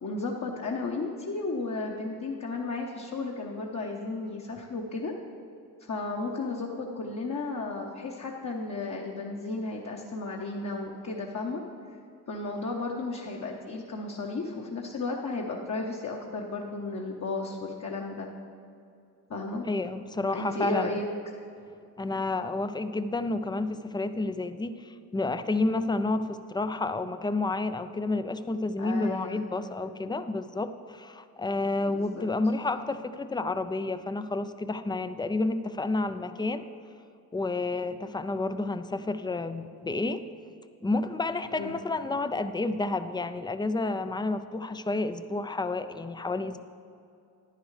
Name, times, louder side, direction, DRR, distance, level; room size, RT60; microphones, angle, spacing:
voice 1, 0.0-5.1 5.8-11.6 12.3-18.3 19.3-19.7 20.3-21.0 28.8-29.4 31.9-32.3 41.5-41.8, left 3 dB, 40° left, -1 dB, 1.1 m, -34 dB
voice 2, 19.6-20.9 22.0-36.6 37.3-40.2 40.8-46.6, left 2 dB, 10° left, 11 dB, 0.5 m, -30 dB
10.5 x 10.0 x 3.3 m, 2.6 s
supercardioid pair, 50°, 42 cm